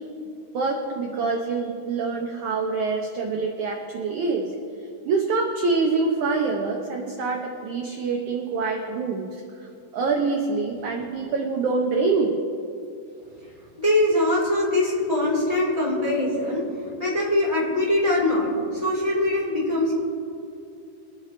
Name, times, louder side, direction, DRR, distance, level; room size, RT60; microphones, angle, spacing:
voice 1, 0.5-4.5 5.0-9.4 9.9-12.3, right 4 dB, 70° right, 1 dB, 1.9 m, -25 dB
voice 2, 13.8-19.9, left 1 dB, 10° left, -6 dB, 3.0 m, -23 dB
24.5 x 10.0 x 3.3 m, 2.6 s
omnidirectional pair, 4.5 m